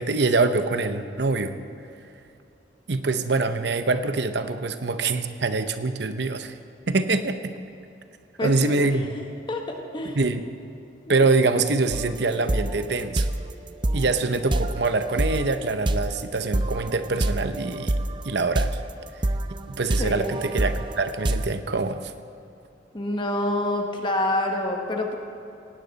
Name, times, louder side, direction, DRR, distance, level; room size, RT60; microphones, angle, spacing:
voice 1, 0.0-1.5 2.9-6.6 6.9-7.5 8.4-9.1 10.1-10.5 11.1-13.3 13.9-17.9 18.2-18.8 19.7-22.1, right 3 dB, 60° right, 9 dB, 0.8 m, -24 dB
voice 2, 8.4-9.2 9.5-10.2 11.1-11.2 20.0-20.3 22.9-25.2, left 1 dB, 25° left, 2 dB, 1.2 m, -27 dB
sound 1, 11.9-21.5, right 1 dB, 25° right, 0.5 m, -27 dB
18.5 x 17.5 x 4.1 m, 2.7 s
head